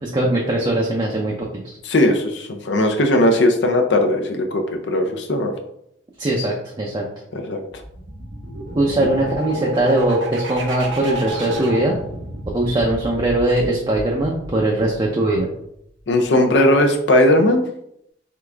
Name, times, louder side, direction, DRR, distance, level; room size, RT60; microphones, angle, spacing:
voice 1, 0.0-1.8 6.2-7.0 8.7-12.0 12.5-15.5, right 1 dB, 25° right, -1 dB, 0.6 m, -20 dB
voice 2, 1.8-5.5 7.3-7.6 16.1-17.6, left 1 dB, 70° left, 4 dB, 0.6 m, -18 dB
sound 1, 7.8-15.3, right 1 dB, 85° right, 0.9 m, -32 dB
3.9 x 3.5 x 3.4 m, 0.76 s
head